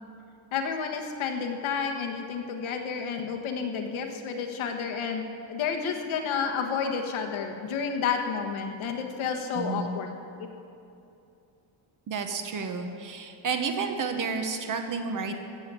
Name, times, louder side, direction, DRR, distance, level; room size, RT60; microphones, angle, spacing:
voice 1, 0.5-10.1 10.4-10.5, left 6 dB, 85° left, 3 dB, 1.5 m, -30 dB
voice 2, 9.5-9.9 12.1-15.3, right 5 dB, 40° right, 5 dB, 1.1 m, -31 dB
16.0 x 7.0 x 7.6 m, 2.7 s
cardioid pair, 175°, 47 cm